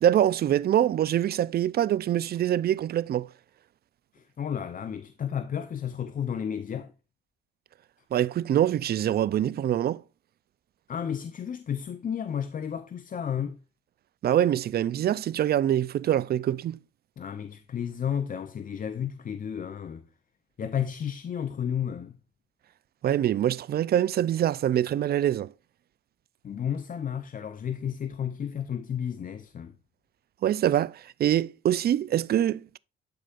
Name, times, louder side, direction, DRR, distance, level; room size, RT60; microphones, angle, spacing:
voice 1, 0.0-3.3 8.1-10.0 14.2-16.8 23.0-25.5 30.4-32.8, right 11 dB, 50° right, 0.4 m, -24 dB
voice 2, 4.1-6.9 10.9-13.6 17.2-20.1 20.6-22.2 26.4-29.7, left 8 dB, 45° left, 0.7 m, -32 dB
11.5 x 5.0 x 2.5 m
cardioid pair, 90°, 20 cm